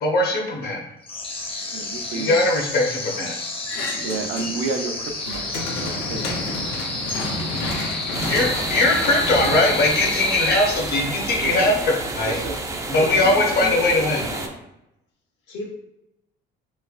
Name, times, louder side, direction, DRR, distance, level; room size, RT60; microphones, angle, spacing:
voice 1, 0.0-0.8 2.1-3.4 8.3-11.7 12.2-12.4 12.9-14.2, left 2 dB, 55° left, 1 dB, 0.8 m, -20 dB
sound 1, 1.0-11.3, left 2 dB, 30° left, 0.6 m, -30 dB
voice 2, 1.7-2.4 4.0-5.5 5.8-6.4 11.4-11.8 12.3-12.6 13.1-13.3, right 4 dB, 75° right, 5 dB, 0.5 m, -31 dB
sound 2, 3.7-4.8 5.1-10.5, left 2 dB, 90° left, 0.8 m, -30 dB
sound 3, 8.1-14.5, right 2 dB, 15° right, 0.3 m, -30 dB
voice 3, 13.0-14.5 15.5-15.7, left 3 dB, 75° left, -2 dB, 1.2 m, -34 dB
3.2 x 3.0 x 2.4 m, 0.85 s
cardioid pair, 125°, 19 cm